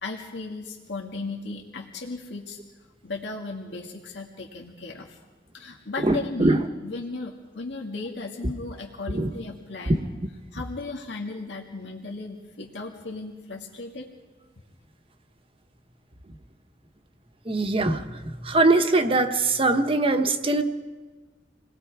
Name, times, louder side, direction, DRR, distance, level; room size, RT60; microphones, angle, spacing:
voice 1, 0.0-2.6 3.0-5.2 5.5-10.0 10.5-14.1, left 3 dB, 85° left, 0 dB, 2.0 m, -36 dB
voice 2, 6.0-6.6 9.1-9.3 17.5-18.0 18.4-20.6, right 2 dB, 30° right, 7 dB, 1.1 m, -21 dB
28.0 x 19.5 x 4.8 m, 1.3 s
head